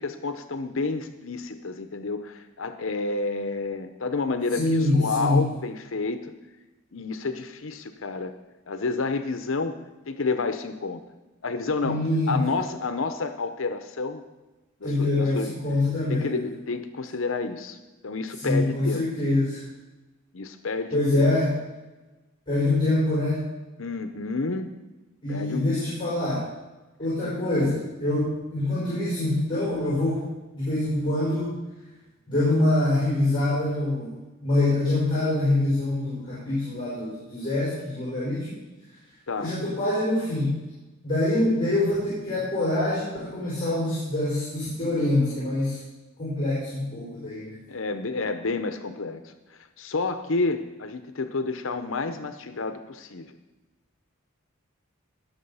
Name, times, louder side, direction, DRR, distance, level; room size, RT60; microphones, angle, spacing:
voice 1, 0.0-6.3 6.9-8.3 8.7-9.8 10.1-11.0 11.4-14.2 14.8-15.5 16.1-17.8 18.0-19.1 20.3-21.4 23.8-24.7 25.3-25.7 39.3-39.5 47.7-49.3 49.8-53.3, left 3 dB, 70° left, 9 dB, 0.7 m, -30 dB
voice 2, 4.6-5.4 11.8-12.4 14.8-16.4 18.4-19.6 20.9-21.6 22.5-23.4 25.2-26.5 27.0-30.3 30.5-31.5 32.3-34.1 34.4-38.6 39.4-40.6 41.0-45.8 46.2-47.6, left 2 dB, 25° left, -8 dB, 5.5 m, -25 dB
19.5 x 6.7 x 5.6 m, 1.1 s
head